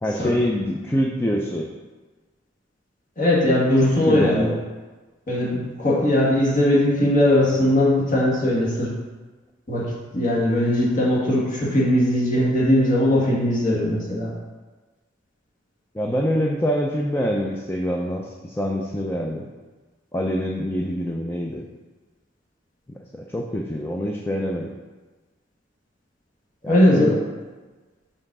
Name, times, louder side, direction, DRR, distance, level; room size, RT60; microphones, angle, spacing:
voice 1, 0.0-1.7 3.8-4.6 15.9-19.5 20.1-21.6 22.9-24.7 26.6-27.2, equal, 10° left, -1 dB, 0.5 m, -25 dB
voice 2, 3.2-4.5 5.3-8.9 9.7-9.8 10.1-14.3 26.7-27.2, left 1 dB, 45° left, -5 dB, 1.9 m, -19 dB
5.5 x 4.1 x 6.0 m, 1.3 s
head